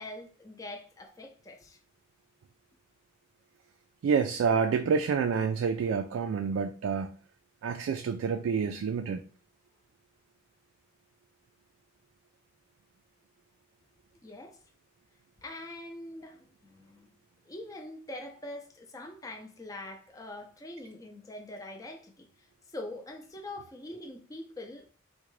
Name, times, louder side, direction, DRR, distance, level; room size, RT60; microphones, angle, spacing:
voice 1, 0.0-1.8 14.2-14.6 15.4-17.1 17.5-24.9, left 1 dB, 15° left, 0.4 m, -44 dB
voice 2, 4.0-7.1 7.6-9.2, right 6 dB, 85° right, 0.3 m, -28 dB
3.6 x 2.2 x 3.0 m
head